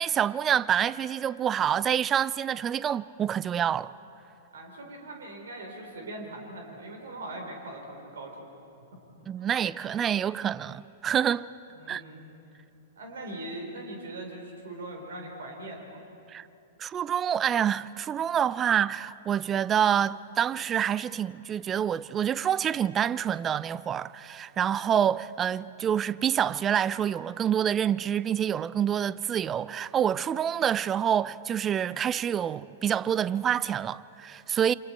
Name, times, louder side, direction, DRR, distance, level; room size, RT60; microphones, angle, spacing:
voice 1, 0.0-3.9 9.3-11.5 11.9-12.0 16.3-16.5 16.8-34.7, right 9 dB, 25° right, 0.4 m, -27 dB
voice 2, 4.5-8.5 9.4-9.5 11.7-12.3 13.0-16.0, right 1 dB, 70° right, 4.3 m, -41 dB
27.5 x 26.5 x 4.5 m
figure-of-eight pair, 100°, 0 cm